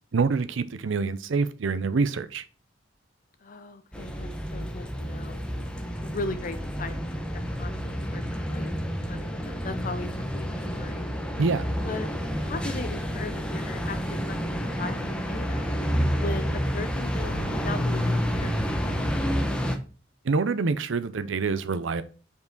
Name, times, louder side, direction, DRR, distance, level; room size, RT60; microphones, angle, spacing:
voice 1, 0.1-2.4 11.4-11.7 20.2-22.0, right 4 dB, 75° right, 0.5 m, -26 dB
voice 2, 3.4-5.4 6.0-7.0 7.3-7.7 8.1-8.8 9.1-10.5 10.7-11.0 11.8-12.1 12.4-14.0 14.3-15.7 16.2-18.6, left 3 dB, 45° left, 0.6 m, -38 dB
sound 1, 3.9-19.8, equal, 5° left, 0.7 m, -29 dB
5.6 x 4.6 x 3.8 m
head